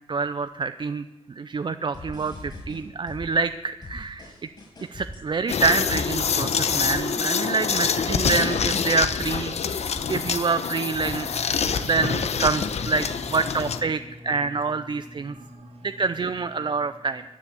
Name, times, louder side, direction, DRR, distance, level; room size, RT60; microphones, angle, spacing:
voice 1, 0.1-4.3 4.9-11.3 11.8-15.3 15.8-17.2, right 4 dB, 45° right, 11 dB, 0.5 m, -27 dB
sound 1, 1.9-3.5 3.8-10.6 10.9-12.5, left 1 dB, 40° left, 7.7 m, -41 dB
sound 2, 5.5-13.8, left 6 dB, 80° left, 0.9 m, -26 dB
voice 2, 10.8-15.9, equal, 65° right, 4 dB, 3.1 m, -41 dB
22.5 x 7.5 x 8.3 m, 1.1 s
wide cardioid pair, 125°, 11 cm